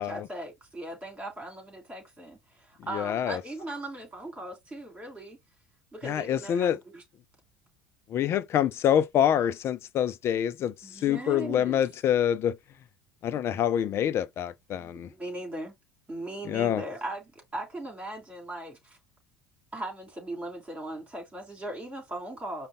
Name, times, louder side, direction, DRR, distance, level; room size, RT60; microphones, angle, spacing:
voice 1, 0.0-5.4 5.9-7.0 10.8-11.8 14.8-15.7 16.1-19.0 19.7-22.7, right 1 dB, 15° right, 3.0 m, -39 dB
voice 2, 2.9-3.4 6.0-6.8 8.1-10.7 11.0-12.6 13.2-15.1 16.5-16.8, left 10 dB, 40° left, 0.4 m, -26 dB
5.1 x 2.2 x 3.7 m
figure-of-eight pair, 70°, 7 cm